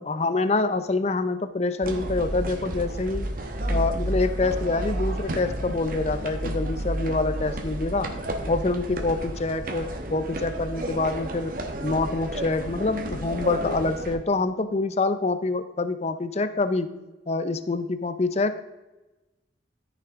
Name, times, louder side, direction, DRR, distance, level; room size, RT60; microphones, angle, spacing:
voice 1, 0.0-3.3 3.7-8.1 8.5-11.5 11.8-16.9 17.3-18.6, left 3 dB, 35° left, 11 dB, 0.5 m, -26 dB
sound 1, 1.8-14.2, right 1 dB, 50° right, 1.1 m, -31 dB
13.5 x 5.8 x 3.6 m, 1.1 s
head